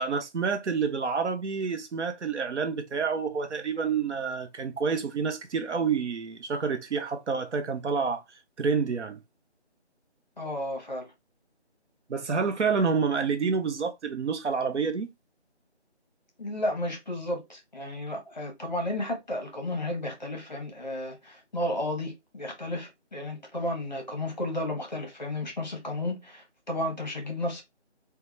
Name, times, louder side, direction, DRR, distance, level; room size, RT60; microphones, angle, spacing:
voice 1, 0.0-8.2 8.6-9.2 12.1-15.1, right 5 dB, 80° right, 0.6 m, -28 dB
voice 2, 10.4-11.1 16.4-27.6, left 1 dB, 40° left, 0.7 m, -33 dB
2.2 x 2.1 x 2.9 m
figure-of-eight pair, 170°, 34 cm